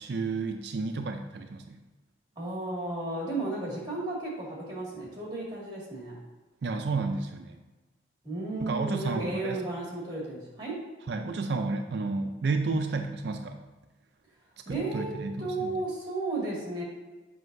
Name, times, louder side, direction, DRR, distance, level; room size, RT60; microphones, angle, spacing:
voice 1, 0.0-1.8 6.6-7.6 8.7-9.6 11.1-13.6 14.7-15.7, right 3 dB, 60° right, 5 dB, 0.4 m, -31 dB
voice 2, 2.4-6.2 8.2-10.7 14.7-16.8, right 2 dB, 25° right, -4 dB, 2.0 m, -34 dB
7.7 x 5.4 x 2.6 m, 1.2 s
head